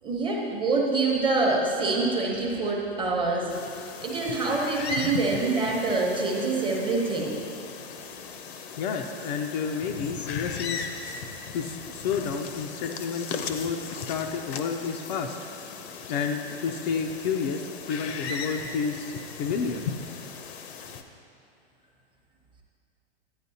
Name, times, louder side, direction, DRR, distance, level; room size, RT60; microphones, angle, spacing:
voice 1, 0.0-7.4, right 3 dB, 15° right, -1 dB, 0.9 m, -26 dB
sound 1, 3.5-21.0, left 5 dB, 70° left, 0.8 m, -37 dB
voice 2, 8.8-10.9 11.5-15.4 16.1-19.1 19.4-19.8, left 6 dB, 45° left, 3 dB, 0.5 m, -30 dB
10.5 x 9.0 x 2.8 m, 2.7 s
hypercardioid pair, 140°, 33 cm